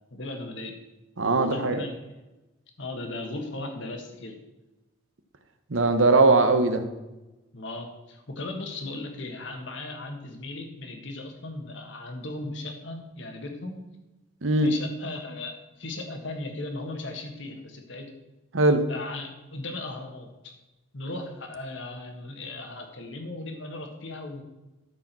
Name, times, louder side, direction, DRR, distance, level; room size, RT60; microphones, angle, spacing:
voice 1, 0.1-0.8 1.4-2.0 2.8-4.4 7.5-13.8 14.6-18.1 18.9-20.5 20.9-24.4, left 2 dB, 65° left, 4 dB, 1.7 m, -37 dB
voice 2, 1.2-1.8 5.7-6.8 14.4-14.7 18.5-18.8, right 2 dB, 75° right, 8 dB, 1.0 m, -20 dB
12.5 x 4.9 x 6.1 m, 1.0 s
head